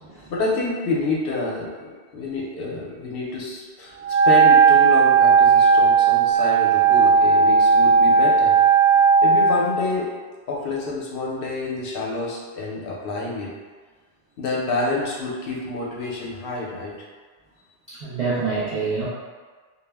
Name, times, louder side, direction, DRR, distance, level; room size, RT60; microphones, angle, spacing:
voice 1, 0.3-8.6 9.2-10.1 10.5-13.5 14.4-16.9, left 2 dB, 65° left, -4 dB, 0.8 m, -28 dB
Wind instrument woodwind instrument, 4.0-9.6, right 5 dB, 90° right, 1.0 m, -15 dB
voice 2, 17.9-19.1, right 4 dB, 45° right, -12 dB, 0.6 m, -26 dB
2.3 x 2.0 x 3.3 m, 1.5 s
omnidirectional pair, 1.1 m